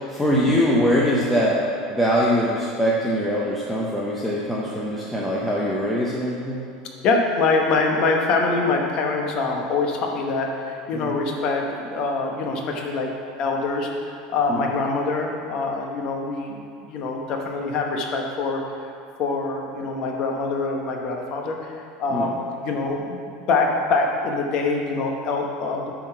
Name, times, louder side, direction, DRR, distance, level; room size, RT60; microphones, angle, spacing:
voice 1, 0.1-1.6 1.9-6.6 10.9-11.1 14.5-14.7 22.1-22.4, equal, 5° left, -6 dB, 0.5 m, -22 dB
voice 2, 7.0-13.1 13.4-18.9 19.2-22.4 22.6-25.8, left 3 dB, 35° left, 1 dB, 0.9 m, -24 dB
9.1 x 3.9 x 5.4 m, 2.4 s
cardioid pair, 175°, 2 cm